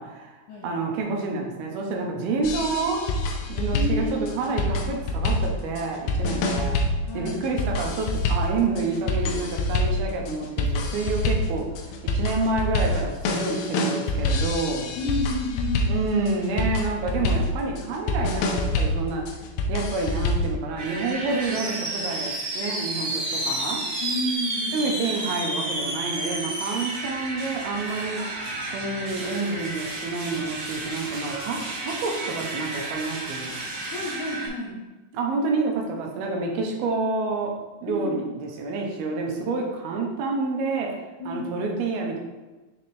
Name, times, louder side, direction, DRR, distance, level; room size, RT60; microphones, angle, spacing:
voice 1, 0.0-0.4 0.6-3.1 3.5-6.7 7.1-14.9 15.9-19.2 19.7-23.8 24.7-28.2 28.7-33.6 35.1-37.5 37.8-38.2 38.6-40.9 41.3-42.2, right 3 dB, 90° right, 1 dB, 2.8 m, -28 dB
sound 1, 2.4-20.6, left 2 dB, 90° left, 2.5 m, -26 dB
voice 2, 3.7-4.4 6.3-6.5 7.1-7.4 15.0-15.9 24.0-24.9 33.5-34.8 37.9-38.2 41.2-41.5, left 2 dB, 75° left, -3 dB, 1.9 m, -31 dB
sound 2, 20.8-34.5, right 2 dB, 55° right, 1.2 m, -31 dB
7.1 x 4.3 x 3.3 m, 1.2 s
omnidirectional pair, 4.4 m